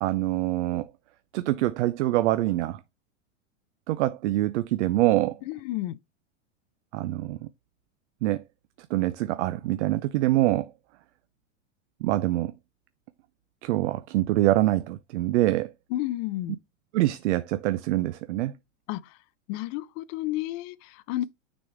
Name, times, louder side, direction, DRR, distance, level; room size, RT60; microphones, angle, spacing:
voice 1, 0.0-0.9 1.3-2.8 3.9-5.4 6.9-7.4 8.2-8.4 8.9-10.7 12.0-12.5 13.6-15.7 16.9-18.5, right 16 dB, 65° right, 0.6 m, -25 dB
voice 2, 5.5-6.0 15.9-16.6 18.9-19.0 19.5-21.3, left 15 dB, 35° left, 0.4 m, -31 dB
6.2 x 4.2 x 4.7 m
supercardioid pair, 140°, 37 cm